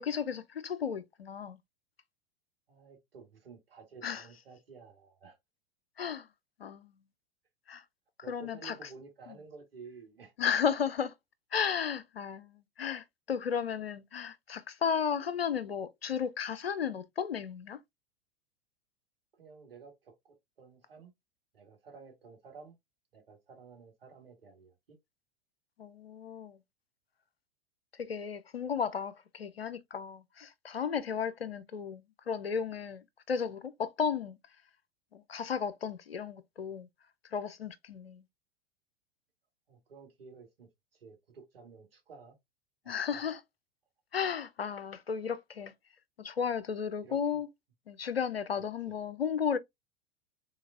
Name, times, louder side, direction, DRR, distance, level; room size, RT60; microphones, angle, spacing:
voice 1, 0.0-1.6 4.0-4.2 6.0-6.3 6.6-6.9 7.7-7.8 8.3-8.7 9.3-9.4 10.4-11.1 11.5-17.8 25.8-26.6 28.0-34.4 35.1-36.9 37.3-38.2 42.9-43.4 44.1-45.7 46.2-47.5 47.9-49.6, left 7 dB, 80° left, 0.5 m, -34 dB
voice 2, 2.7-5.4 8.2-10.3 19.4-21.1 21.5-22.8 23.1-25.0 39.7-42.3 42.8-43.2 47.0-47.2, right 5 dB, 70° right, 1.6 m, -53 dB
3.8 x 3.6 x 2.6 m
figure-of-eight pair, 90°, 29 cm